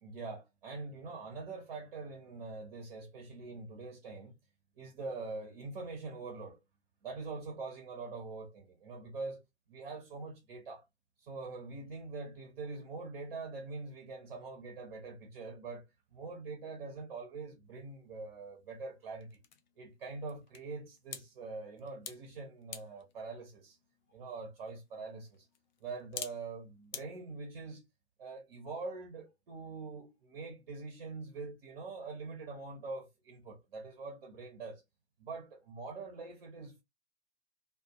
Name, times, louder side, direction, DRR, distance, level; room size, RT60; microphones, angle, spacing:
voice 1, 0.0-4.3 4.8-6.6 7.0-9.4 9.7-10.8 11.2-15.8 16.1-19.3 19.8-23.8 24.1-25.5 25.8-27.8 28.2-34.8 35.2-36.8, right 3 dB, 50° right, 0.9 m, -44 dB
sound 1, 17.7-27.0, left 8 dB, 45° left, 0.5 m, -51 dB
2.5 x 2.4 x 2.3 m
figure-of-eight pair, 115°, 33 cm